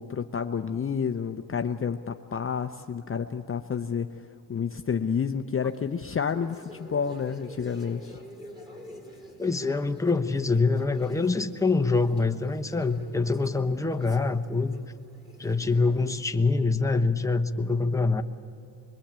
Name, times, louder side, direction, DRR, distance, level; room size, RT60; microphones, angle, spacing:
voice 1, 0.0-4.1 4.5-8.2, left 6 dB, 30° left, 7 dB, 0.7 m, -30 dB
sound 1, 5.6-16.1, equal, 10° right, 4.3 m, -48 dB
voice 2, 9.4-14.7 15.4-18.2, left 3 dB, 5° left, 6 dB, 1.0 m, -25 dB
25.0 x 22.0 x 8.9 m, 2.9 s
cardioid pair, 115°, 42 cm